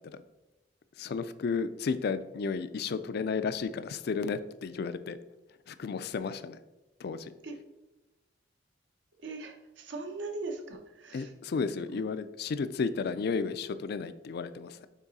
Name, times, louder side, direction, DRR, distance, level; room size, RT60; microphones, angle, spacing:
voice 1, 1.0-5.2 5.7-6.6 7.0-7.3 11.1-14.9, left 5 dB, 55° left, 13 dB, 0.3 m, -33 dB
voice 2, 9.2-11.3 11.8-12.0, right 3 dB, 75° right, 3 dB, 0.9 m, -40 dB
6.0 x 3.9 x 4.1 m, 1.0 s
head